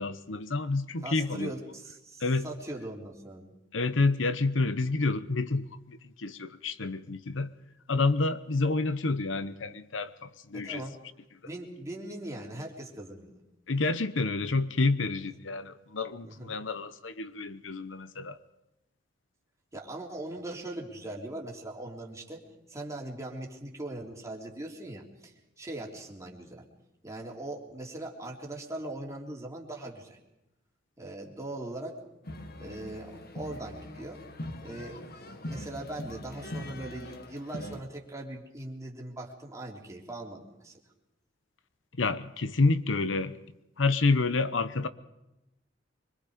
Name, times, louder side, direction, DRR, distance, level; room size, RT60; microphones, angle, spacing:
voice 1, 0.0-1.5 2.2-2.5 3.7-7.5 7.9-10.8 13.7-18.4 42.0-43.4 43.8-44.9, left 3 dB, 80° left, 13 dB, 0.9 m, -29 dB
voice 2, 1.0-3.5 10.5-11.0 11.4-13.4 16.2-16.6 19.7-26.6 27.0-30.2 31.0-32.0 32.6-34.2 34.6-35.0 35.3-40.8, right 1 dB, 15° right, -2 dB, 3.5 m, -40 dB
sound 1, 32.2-37.8, left 1 dB, 55° left, 1.6 m, -41 dB
25.5 x 23.5 x 5.1 m, 0.93 s
head